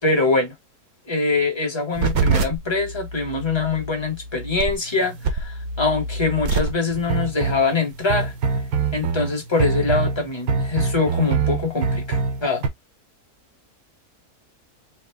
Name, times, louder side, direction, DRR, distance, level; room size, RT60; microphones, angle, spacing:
voice 1, 0.0-0.5 1.1-8.3 8.9-12.6, left 3 dB, 20° left, 1.3 m, -23 dB
sound 1, 2.0-12.7, right 4 dB, 70° right, 1.3 m, -25 dB
4.6 x 2.1 x 3.4 m
omnidirectional pair, 1.6 m